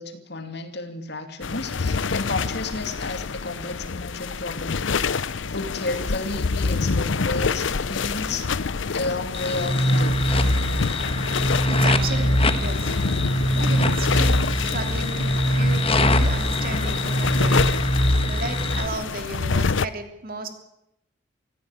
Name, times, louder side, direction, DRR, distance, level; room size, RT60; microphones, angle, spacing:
voice 1, 0.0-5.1 5.4-8.4 8.9-10.3, left 2 dB, 60° left, 7 dB, 2.5 m, -32 dB
sound 1, 1.4-19.9, left 4 dB, 75° left, 0.7 m, -27 dB
sound 2, 9.4-18.9, left 1 dB, 30° left, 1.4 m, -22 dB
sound 3, 11.0-16.6, right 1 dB, 80° right, 2.6 m, -40 dB
voice 2, 11.7-12.9 13.5-17.7 18.3-20.5, right 3 dB, 50° right, 6 dB, 3.1 m, -34 dB
24.5 x 15.0 x 9.0 m, 0.85 s
head